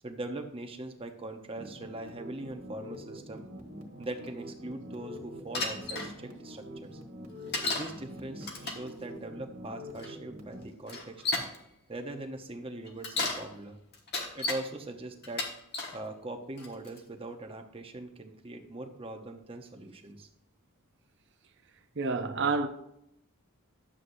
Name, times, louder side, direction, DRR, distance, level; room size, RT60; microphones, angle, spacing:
voice 1, 0.0-3.5 4.0-7.0 7.6-11.2 11.9-13.8 14.3-15.5 15.9-20.3, right 2 dB, 25° right, 0.8 m, -41 dB
sound 1, 1.5-10.6, equal, 80° right, 1.5 m, -45 dB
Bicycle, 5.5-6.1 7.5-7.9 8.4-8.9 10.0-10.1 10.9-11.6 12.9-13.4 13.9-14.6 15.2-16.0 16.6-17.0, left 3 dB, 50° left, 1.4 m, -33 dB
voice 2, 22.0-22.7, right 4 dB, 55° right, 0.8 m, -28 dB
11.0 x 7.7 x 2.7 m
head